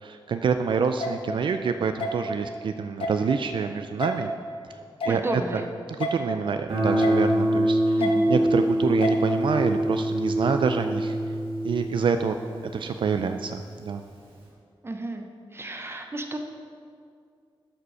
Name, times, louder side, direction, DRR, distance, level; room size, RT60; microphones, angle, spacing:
voice 1, 0.0-4.3 5.0-5.2 6.0-8.0 8.3-11.2 11.6-12.3 12.7-14.0, right 6 dB, 60° right, 7 dB, 0.4 m, -27 dB
sound 1, 1.0-1.1 2.0-2.1 3.0-3.2 4.0-4.1 5.0-5.2 6.0-6.1 7.0-7.2 8.0-8.1 9.0-9.2, left 2 dB, 80° left, 1.3 m, -28 dB
voice 2, 5.1-5.7 8.0-8.3 14.8-15.3 15.5-16.4, right 2 dB, 25° right, 4 dB, 0.7 m, -32 dB
Guitar, 6.7-13.4, right 1 dB, 80° right, 2.2 m, -25 dB
12.5 x 5.2 x 5.5 m, 2.3 s
wide cardioid pair, 130°, 9 cm